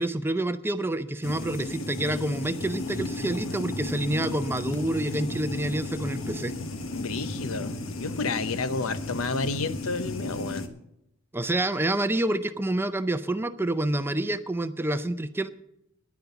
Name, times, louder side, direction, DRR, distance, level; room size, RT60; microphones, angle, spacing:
voice 1, 0.0-6.5 11.3-15.5, right 1 dB, 10° right, 11 dB, 0.5 m, -28 dB
sound 1, 1.2-10.7, left 2 dB, 65° left, 1.2 m, -34 dB
voice 2, 6.9-10.7, left 3 dB, 85° left, 13 dB, 0.7 m, -31 dB
10.5 x 9.3 x 7.0 m, 0.82 s
head